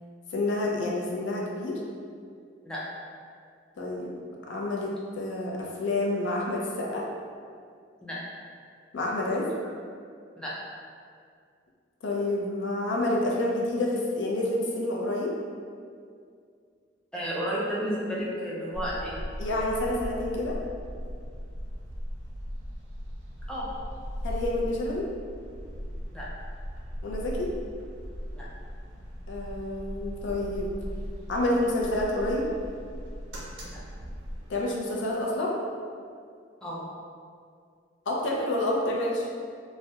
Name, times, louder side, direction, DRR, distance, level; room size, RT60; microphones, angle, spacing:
voice 1, 0.3-1.8 3.8-4.1 4.5-7.1 8.9-9.5 12.0-15.3 19.4-20.6 24.2-25.1 27.0-27.5 29.3-30.7 31.3-32.4 34.5-35.6 38.1-39.3, left 1 dB, 70° left, -2 dB, 0.4 m, -28 dB
voice 2, 17.1-19.2 23.5-23.7 26.1-26.3 28.3-28.5 36.6-36.8, equal, 5° left, -7 dB, 0.3 m, -32 dB
sound 1, 18.7-34.5, equal, 80° right, 0.5 m, -38 dB
2.3 x 2.0 x 2.7 m, 2.2 s
head